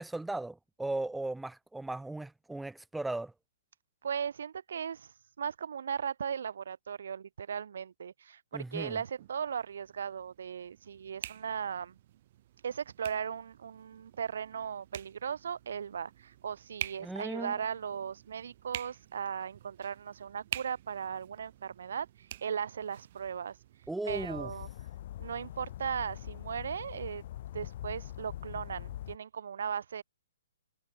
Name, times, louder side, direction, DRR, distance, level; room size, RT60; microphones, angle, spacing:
voice 1, 0.0-3.3 8.5-9.0 17.0-17.5 23.9-24.5, right 2 dB, 5° right, 0.4 m, -37 dB
voice 2, 4.0-12.0 12.6-23.6 24.1-24.7 25.2-27.2 27.5-30.0, right 7 dB, 70° right, 0.6 m, -37 dB
sound 1, 8.8-23.9, right 13 dB, 40° right, 2.7 m, -47 dB
sound 2, 24.1-29.2, left 13 dB, 45° left, 4.0 m, -43 dB
hypercardioid pair, 160°, 0 cm